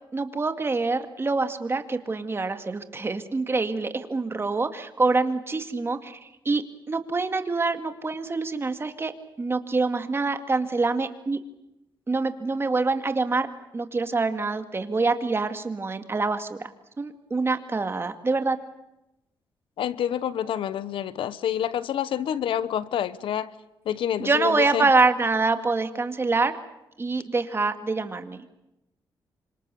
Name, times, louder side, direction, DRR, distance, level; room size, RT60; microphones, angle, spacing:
voice 1, 0.1-9.1 9.4-11.4 12.1-13.5 13.7-16.7 17.0-18.6 24.2-26.5 27.0-28.4, right 3 dB, 30° right, 2.1 m, -25 dB
voice 2, 19.8-23.5 23.8-24.9, left 10 dB, 85° left, 1.0 m, -28 dB
28.0 x 26.0 x 7.0 m
cardioid pair, 105°, 9 cm